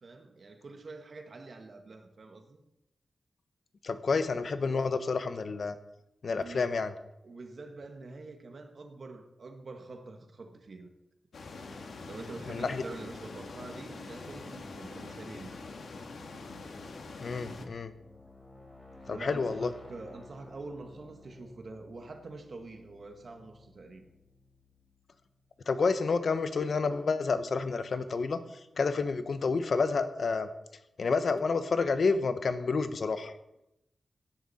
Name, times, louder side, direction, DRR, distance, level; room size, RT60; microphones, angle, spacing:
voice 1, 0.0-2.6 6.3-6.7 7.2-10.9 12.1-15.5 18.9-24.0, right 3 dB, 50° right, 1.5 m, -46 dB
voice 2, 3.8-5.8 6.2-6.9 12.5-12.8 17.2-17.9 19.1-19.7 25.7-28.4 28.8-30.5 31.0-33.3, left 4 dB, 55° left, 1.0 m, -29 dB
sound 1, 11.3-17.7, left 3 dB, 75° left, 1.6 m, -44 dB
sound 2, 16.8-25.6, left 2 dB, 25° left, 3.8 m, -54 dB
17.0 x 10.5 x 4.2 m
wide cardioid pair, 155°, 0 cm